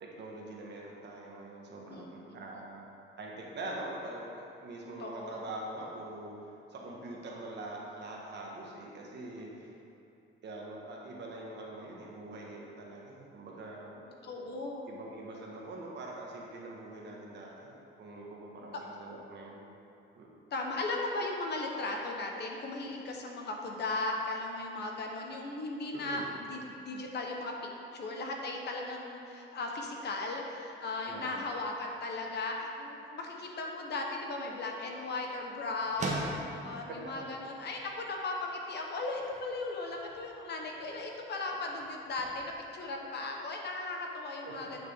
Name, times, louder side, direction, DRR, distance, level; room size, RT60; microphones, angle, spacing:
voice 1, 0.0-2.9 3.2-6.4 6.7-9.7 10.4-13.9 14.9-19.6 20.2-20.3 25.9-26.3 31.1-31.4 36.9-37.3 44.4-44.5, right 2 dB, 55° right, -2 dB, 1.4 m, -44 dB
voice 2, 1.9-2.4 5.0-5.3 14.2-14.9 18.7-18.8 20.5-26.6 26.8-44.9, left 2 dB, 55° left, 1 dB, 1.1 m, -37 dB
sound 1, 34.0-43.7, right 2 dB, 35° right, 1.2 m, -45 dB
9.4 x 6.1 x 3.6 m, 2.8 s
cardioid pair, 130°, 21 cm